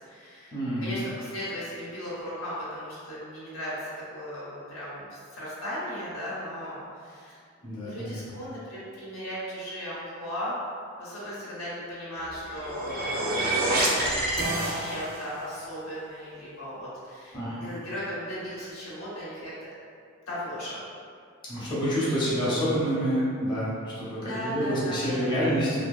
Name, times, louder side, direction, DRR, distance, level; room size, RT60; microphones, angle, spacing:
voice 1, 0.0-7.4 7.8-10.5 11.0-19.7 20.3-20.8 24.1-25.5, equal, 85° left, -9 dB, 0.9 m, -37 dB
voice 2, 0.5-0.9 7.6-8.2 17.3-17.7 21.5-25.9, equal, 20° left, -10 dB, 0.6 m, -28 dB
sound 1, 12.3-15.3, right 1 dB, 45° right, 0.4 m, -27 dB
2.7 x 2.4 x 2.2 m, 2.3 s
head